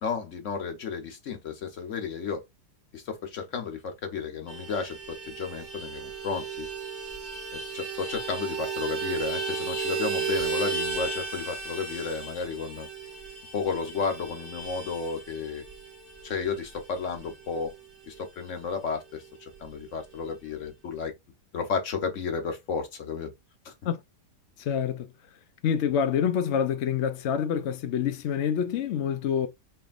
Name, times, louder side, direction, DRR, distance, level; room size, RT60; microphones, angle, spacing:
voice 1, 0.0-2.4 2.9-6.7 7.5-12.9 13.5-15.6 16.2-17.7 18.1-19.2 19.6-21.1 21.5-23.3 23.6-23.7, left 5 dB, 50° left, 1.2 m, -32 dB
Vehicle horn car horn honking, 4.5-18.4 18.7-18.8 19.1-19.3 19.5-20.2, right 5 dB, 30° right, 1.0 m, -35 dB
voice 2, 24.6-25.1 25.6-29.5, left 8 dB, 75° left, 0.6 m, -27 dB
4.5 x 3.2 x 2.4 m
omnidirectional pair, 1.8 m